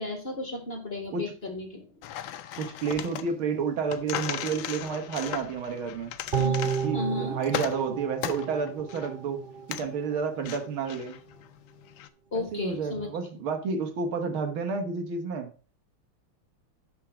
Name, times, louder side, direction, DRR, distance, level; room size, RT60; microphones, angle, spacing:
voice 1, 0.0-1.9 6.4-6.6 6.9-7.4 12.3-13.1, left 2 dB, 30° left, 3 dB, 1.7 m, -34 dB
sound 1, 2.0-12.1, left 11 dB, 70° left, 1.4 m, -38 dB
voice 2, 2.6-6.1 6.8-9.4 9.7-11.2 12.3-15.5, right 5 dB, 75° right, 6 dB, 2.1 m, -30 dB
sound 2, 6.3-9.6 10.0-10.1, right 7 dB, 50° right, 0.6 m, -31 dB
12.5 x 4.6 x 4.9 m, 0.37 s
omnidirectional pair, 2.3 m